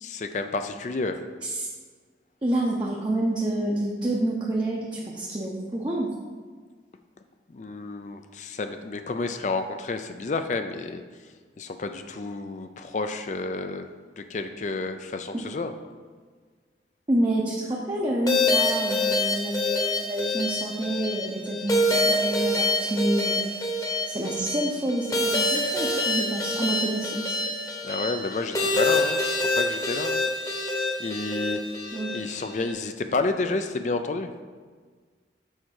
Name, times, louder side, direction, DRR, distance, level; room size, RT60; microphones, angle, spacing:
voice 1, 0.0-1.2 7.5-11.0 11.6-13.9 14.2-15.7 27.8-30.2 31.0-31.6 32.1-34.3, left 3 dB, 40° left, 8 dB, 0.4 m, -30 dB
voice 2, 2.4-6.1 15.3-15.4 17.1-23.4 24.0-27.4 31.9-32.1, right 1 dB, 25° right, -3 dB, 0.7 m, -28 dB
sound 1, 18.3-32.7, left 2 dB, 20° left, 0.9 m, -26 dB
6.3 x 4.7 x 6.3 m, 1.6 s
head